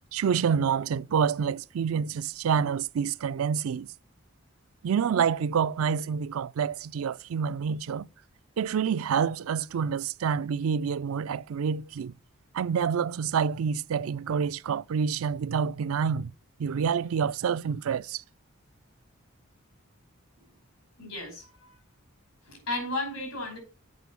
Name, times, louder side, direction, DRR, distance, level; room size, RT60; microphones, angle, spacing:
voice 1, 0.1-3.9 4.8-8.1 8.6-12.1 12.5-16.3 16.6-18.2, right 7 dB, 80° right, 0.4 m, -27 dB
voice 2, 21.0-21.5 22.5-23.6, left 2 dB, 85° left, 5.3 m, -33 dB
8.1 x 5.1 x 6.9 m
head